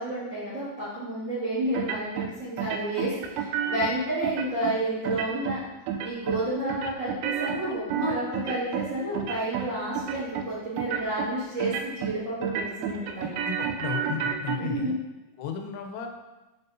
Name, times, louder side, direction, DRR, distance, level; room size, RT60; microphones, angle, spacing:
voice 1, 0.0-5.6 6.0-13.4 14.6-15.0, right 1 dB, 40° right, -10 dB, 1.9 m, -30 dB
sound 1, 1.7-2.3 2.6-3.9 4.2-4.7 5.0-5.6 5.9-6.4 6.7-8.9 9.1-9.7 10.0-10.5 10.8-11.3 11.6-12.2 12.4-14.6, right 8 dB, 90° right, 2.2 m, -30 dB
voice 2, 13.5-15.0 15.4-16.1, left 8 dB, 85° left, 4 dB, 3.0 m, -34 dB
7.5 x 5.9 x 2.7 m, 1.1 s
omnidirectional pair, 5.0 m